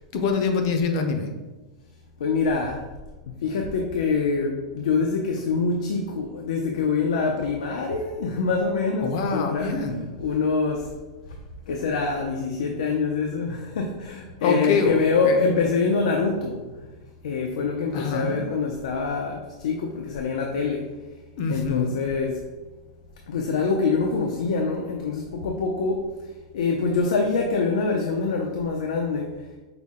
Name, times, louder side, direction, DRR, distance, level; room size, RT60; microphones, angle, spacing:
voice 1, 0.1-1.3 9.0-10.1 14.4-15.5 17.9-18.4 21.4-21.9, left 4 dB, 40° left, 5 dB, 0.5 m, -25 dB
voice 2, 2.2-2.8 3.3-9.7 10.2-10.9 11.7-16.7 17.2-20.9 21.5-22.4 23.3-26.0 26.5-29.4, left 4 dB, 85° left, 1 dB, 0.5 m, -25 dB
5.7 x 2.1 x 3.6 m, 1.2 s
supercardioid pair, 175°, 4 cm